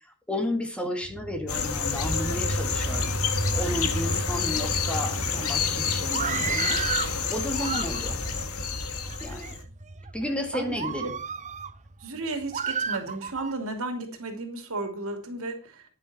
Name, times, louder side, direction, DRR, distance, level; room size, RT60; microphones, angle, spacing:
voice 1, 0.3-3.1 3.5-6.8 7.3-8.2 9.2-9.6 10.1-11.1, left 1 dB, 5° left, 3 dB, 2.1 m, -32 dB
sound 1, 1.0-12.6, right 1 dB, 50° right, 4.5 m, -34 dB
sound 2, 1.5-9.6, left 6 dB, 75° left, 1.8 m, -29 dB
Screaming, 6.0-7.1 7.5-8.3 9.0-9.5 10.1-10.2 10.7-11.7 12.5-13.5, right 7 dB, 35° right, 0.5 m, -32 dB
voice 2, 10.5-11.1 12.0-15.8, right 2 dB, 70° right, 6 dB, 2.9 m, -34 dB
11.5 x 10.0 x 4.3 m, 0.34 s
head